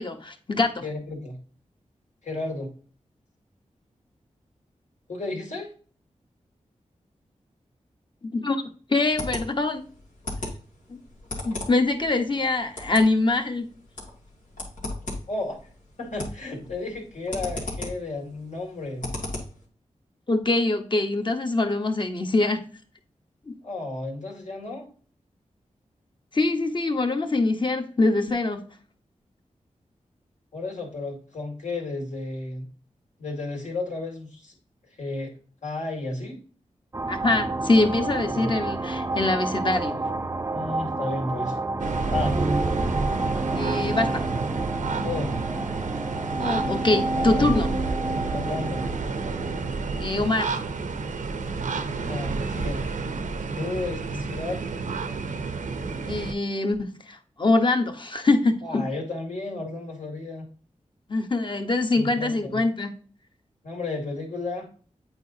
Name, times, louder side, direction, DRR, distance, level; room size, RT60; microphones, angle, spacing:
voice 1, 0.0-0.8 8.3-8.6 8.9-9.8 10.9-11.0 11.4-13.7 20.3-22.6 23.5-23.6 26.3-28.6 37.1-40.0 43.5-44.2 46.4-47.7 50.0-50.5 56.1-58.8 61.1-62.9, left 2 dB, 40° left, 6 dB, 1.2 m, -24 dB
voice 2, 0.8-1.4 2.2-2.7 5.1-5.7 15.3-15.6 16.0-19.1 23.6-24.9 30.5-32.7 33.2-34.6 35.0-35.3 35.6-36.4 38.3-38.5 40.5-41.6 42.1-42.4 45.0-45.3 47.1-47.5 48.3-48.9 52.0-52.9 53.6-54.6 58.6-60.5 62.0-62.6 63.6-64.7, left 2 dB, 70° left, 0 dB, 2.3 m, -33 dB
sound 1, 8.9-19.6, left 2 dB, 90° left, 2.3 m, -37 dB
sound 2, 36.9-51.1, right 2 dB, 20° right, 0.5 m, -29 dB
sound 3, 41.8-56.3, right 4 dB, 85° right, 0.7 m, -30 dB
8.5 x 4.7 x 2.8 m, 0.41 s
cardioid pair, 55°, 13 cm